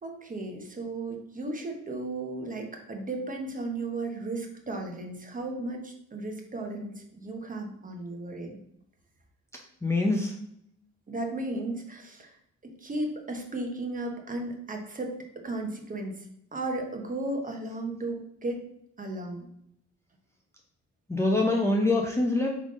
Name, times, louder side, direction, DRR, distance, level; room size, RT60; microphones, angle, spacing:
voice 1, 0.0-8.6 11.1-12.4 12.8-16.3 16.5-18.6 19.0-19.5, right 2 dB, 25° right, 3 dB, 0.9 m, -35 dB
voice 2, 9.8-10.3 21.1-22.5, left 2 dB, 10° left, -1 dB, 0.6 m, -24 dB
3.7 x 3.5 x 3.7 m, 0.75 s
cardioid pair, 90°, 30 cm